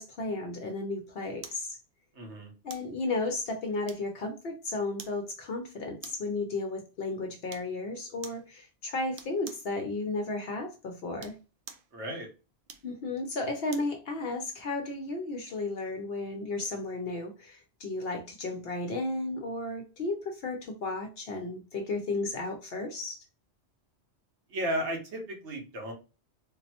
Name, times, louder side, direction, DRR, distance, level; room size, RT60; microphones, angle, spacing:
voice 1, 0.0-1.8 2.6-11.3 12.8-23.2, left 2 dB, 65° left, 0.8 m, -34 dB
sound 1, 1.4-1.7 2.7-2.9 3.9-4.3 5.0-5.2 6.0-6.3 7.5-7.7 8.2-8.5 9.2-9.7 11.1-11.9 12.7-14.0 14.4-14.5, right 7 dB, 60° right, 0.6 m, -47 dB
voice 2, 2.1-2.5 11.9-12.3 24.5-25.9, equal, 80° right, 1.3 m, -34 dB
3.9 x 2.1 x 2.8 m
omnidirectional pair, 1.2 m